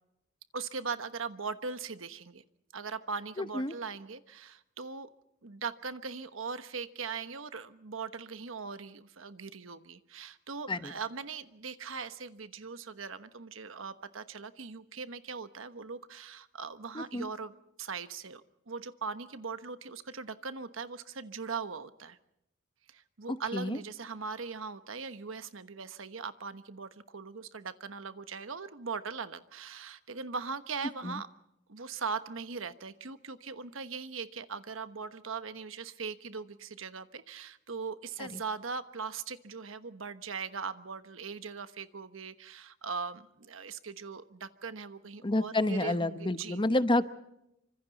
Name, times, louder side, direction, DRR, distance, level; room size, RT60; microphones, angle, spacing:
voice 1, 0.5-2.4 2.7-5.1 5.4-17.5 17.8-22.2 22.9-31.3 31.7-46.6, right 5 dB, 80° right, 11 dB, 1.2 m, -40 dB
voice 2, 3.4-3.7 10.7-10.9 16.9-17.3 23.3-23.8 31.0-31.2 38.2-38.3 45.2-47.1, left 2 dB, 25° left, 11 dB, 0.9 m, -29 dB
27.0 x 25.0 x 4.1 m, 0.83 s
head